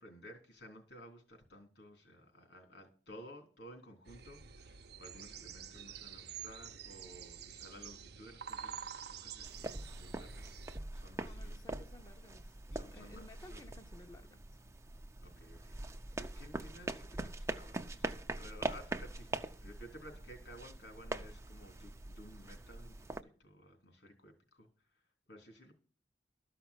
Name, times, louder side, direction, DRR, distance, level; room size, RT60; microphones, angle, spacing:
voice 1, 0.0-11.5 12.7-13.7 15.2-15.7 16.1-23.0 23.2-25.0 25.3-25.7, equal, 75° left, 3.6 m, -55 dB
sound 1, 4.0-10.8, right 8 dB, 65° right, 0.7 m, -48 dB
sound 2, 9.4-23.2, right 2 dB, 15° right, 0.6 m, -43 dB
voice 2, 11.2-14.4, left 1 dB, 25° left, 0.7 m, -56 dB
13.0 x 5.8 x 8.1 m
head